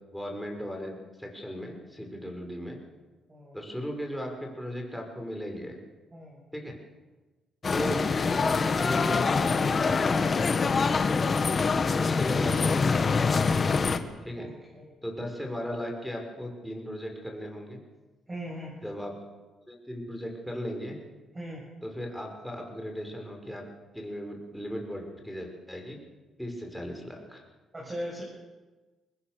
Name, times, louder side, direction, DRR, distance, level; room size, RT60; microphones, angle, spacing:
voice 1, 0.1-2.8 3.5-5.8 6.5-6.8 7.7-8.0 8.3-10.4 12.0-13.1 14.2-14.5 15.0-17.8 18.8-19.1 19.7-21.0 21.8-23.6 23.9-26.0 26.4-27.4, equal, ahead, 1 dB, 6.3 m, -37 dB
sound 1, 7.6-14.0, left 4 dB, 35° left, 1.6 m, -25 dB
voice 2, 11.2-11.7 14.4-14.9 18.3-18.8 21.3-21.6 27.7-28.2, equal, 25° right, -3 dB, 7.7 m, -39 dB
24.0 x 20.0 x 7.0 m, 1.2 s
cardioid pair, 90°, 0 cm